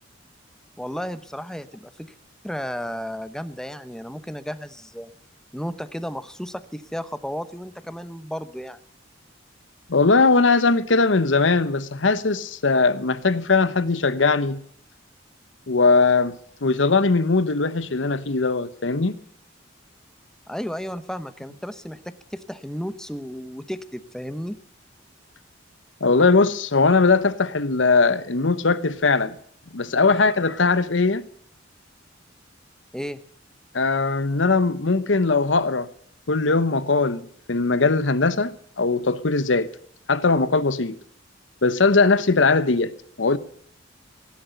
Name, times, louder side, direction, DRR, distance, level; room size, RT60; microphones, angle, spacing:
voice 1, 0.8-2.1 2.4-5.1 5.5-8.8 20.5-24.6 30.1-30.3 32.9-33.2, equal, 5° left, 0.9 m, -33 dB
voice 2, 9.9-14.6 15.7-16.3 16.6-19.1 26.0-29.3 29.7-31.2 33.7-35.9 36.3-39.7 40.1-41.0 41.6-42.9 43.2-43.4, left 3 dB, 75° left, 1.0 m, -20 dB
17.5 x 10.5 x 8.0 m
head